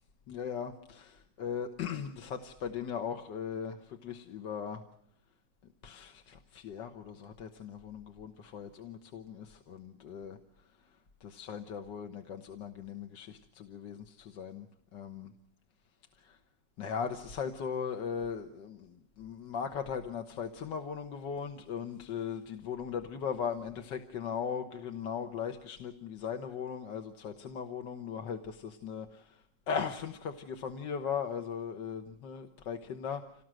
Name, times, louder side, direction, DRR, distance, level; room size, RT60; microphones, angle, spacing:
voice 1, 0.3-4.8 5.8-10.4 11.2-14.7 14.9-15.3 16.2-16.4 16.8-29.3 29.7-33.2, left 7 dB, 70° left, 6 dB, 1.8 m, -38 dB
27.0 x 19.0 x 7.7 m, 0.72 s
omnidirectional pair, 2.0 m